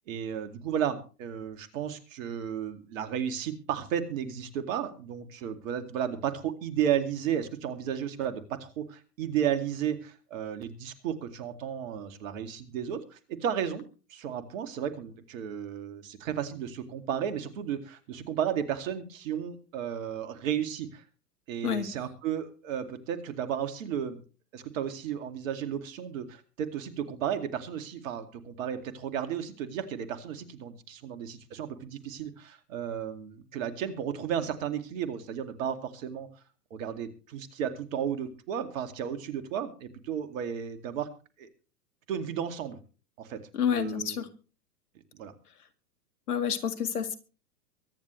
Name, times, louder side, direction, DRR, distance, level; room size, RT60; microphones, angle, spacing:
voice 1, 0.1-13.8 14.1-21.0 21.5-24.2 24.5-36.3 36.7-41.1 41.4-41.5 42.1-42.8 43.2-43.4 43.7-44.2 45.1-45.3, right 9 dB, 55° right, 8 dB, 2.4 m, -33 dB
voice 2, 43.5-44.3 46.3-47.2, left 8 dB, 70° left, 9 dB, 2.1 m, -29 dB
23.5 x 9.9 x 3.2 m, 0.36 s
hypercardioid pair, 105°, 47 cm